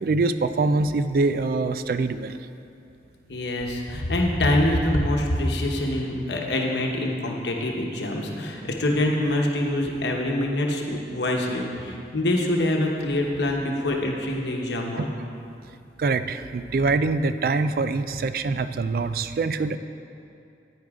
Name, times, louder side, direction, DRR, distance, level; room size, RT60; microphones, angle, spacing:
voice 1, 0.0-2.4 15.0-15.1 16.0-19.8, right 3 dB, 55° right, 11 dB, 0.3 m, -24 dB
voice 2, 3.3-15.1, left 1 dB, 80° left, 0 dB, 1.0 m, -25 dB
10.0 x 9.2 x 3.6 m, 2.5 s
head